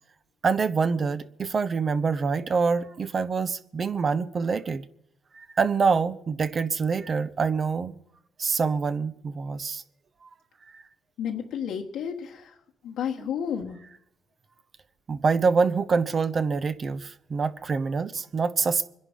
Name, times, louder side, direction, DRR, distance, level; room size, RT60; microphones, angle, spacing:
voice 1, 0.4-4.8 5.3-7.9 8.4-9.8 13.2-13.3 15.1-18.9, right 5 dB, 40° right, 0.8 m, -25 dB
voice 2, 11.2-12.5 12.8-13.8, left 8 dB, 80° left, 1.3 m, -31 dB
23.5 x 10.5 x 5.1 m
cardioid pair, 90°, 0 cm